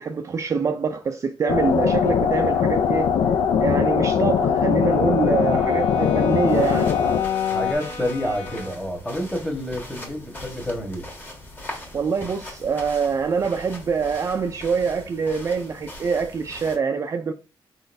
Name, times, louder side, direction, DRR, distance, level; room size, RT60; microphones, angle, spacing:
voice 1, 0.0-3.1 3.6-6.9 11.9-17.3, right 5 dB, 35° right, 0.3 m, -24 dB
sound 1, 1.5-7.7, left 7 dB, 85° left, 0.5 m, -21 dB
Brass instrument, 3.3-8.9, left 3 dB, 70° left, 2.4 m, -40 dB
sound 2, 6.5-16.8, left 1 dB, 20° left, 1.5 m, -40 dB
voice 2, 6.5-7.1 7.5-11.0, equal, 5° left, 1.3 m, -29 dB
4.8 x 3.9 x 2.6 m
wide cardioid pair, 155°, 9 cm